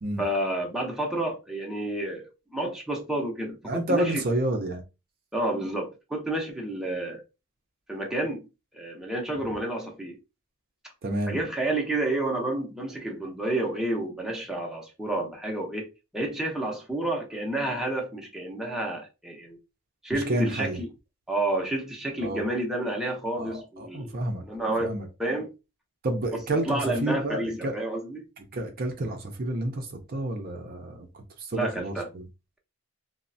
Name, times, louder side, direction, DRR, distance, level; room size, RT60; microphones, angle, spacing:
voice 1, 0.2-4.2 5.3-7.2 7.9-8.5 8.7-10.2 11.3-15.9 16.1-19.6 20.0-20.9 21.3-25.5 26.7-28.3 31.5-32.1, right 1 dB, ahead, 0.6 m, -30 dB
voice 2, 3.6-4.8 11.0-11.4 20.1-20.8 22.2-22.4 23.4-24.4 24.8-25.1 26.0-27.7 28.4-32.2, right 1 dB, 45° right, 0.5 m, -30 dB
3.1 x 2.1 x 2.6 m
head